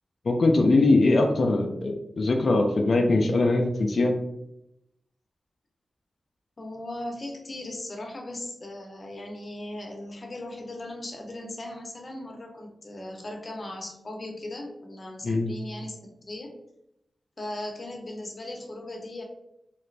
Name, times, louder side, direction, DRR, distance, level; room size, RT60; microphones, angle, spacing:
voice 1, 0.2-4.1 15.2-15.5, left 2 dB, 60° left, 2 dB, 0.4 m, -21 dB
voice 2, 6.6-16.5 17.4-19.2, left 1 dB, 45° left, 1 dB, 0.8 m, -38 dB
3.1 x 2.4 x 3.2 m, 0.84 s
cardioid pair, 70°, 0 cm